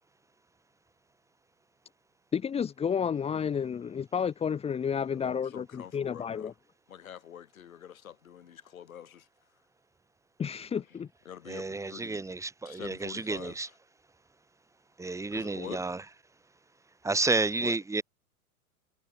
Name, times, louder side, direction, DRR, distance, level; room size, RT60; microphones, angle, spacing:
voice 1, 2.3-6.5 10.4-11.1, left 7 dB, 15° left, 1.3 m, -31 dB
voice 2, 5.1-6.5 6.9-9.3 10.7-10.8 11.3-12.2 12.6-13.7 15.3-15.9 17.6-17.8, left 9 dB, 65° left, 5.9 m, -45 dB
voice 3, 11.5-13.7 15.0-16.0 17.0-18.0, right 3 dB, 5° right, 2.2 m, -31 dB
figure-of-eight pair, 100°, 44 cm